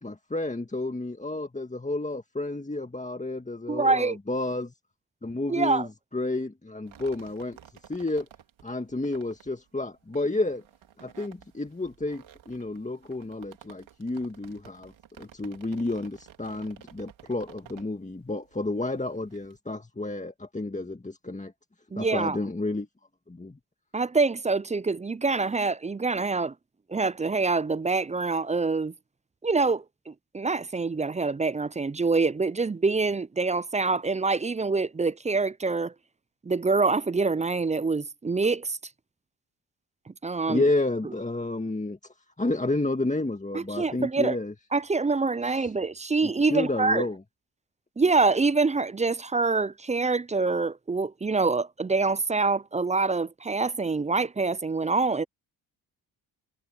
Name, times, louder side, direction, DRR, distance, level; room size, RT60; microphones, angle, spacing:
voice 1, 0.0-4.7 5.2-7.6 7.9-8.3 8.6-10.6 11.0-21.5 22.0-22.9 23.3-23.6 40.5-42.0 42.4-44.5 45.4-45.7 46.2-47.2, left 2 dB, 15° left, 1.7 m, -31 dB
voice 2, 3.7-4.2 5.5-5.9 21.9-22.4 23.9-26.5 26.9-28.9 29.4-35.9 36.5-38.8 40.1-40.6 43.5-44.4 44.7-47.0 48.0-55.2, right 4 dB, 15° right, 0.4 m, -25 dB
sound 1, 6.8-19.6, right 10 dB, 75° right, 3.2 m, -53 dB
supercardioid pair, 50°, 47 cm